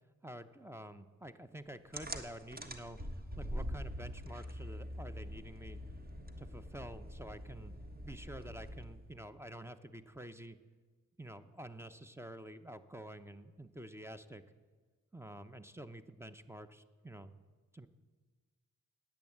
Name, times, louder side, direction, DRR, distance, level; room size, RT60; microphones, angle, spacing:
voice 1, 0.2-3.0 3.4-5.8 6.4-7.7 8.0-10.6 11.2-14.4 15.1-17.4 17.7-17.9, right 1 dB, 5° right, 10 dB, 0.7 m, -49 dB
sound 1, 1.9-9.1, equal, 25° right, 1.3 m, -44 dB
10.5 x 8.9 x 7.9 m, 1.4 s
cardioid pair, 55°, 34 cm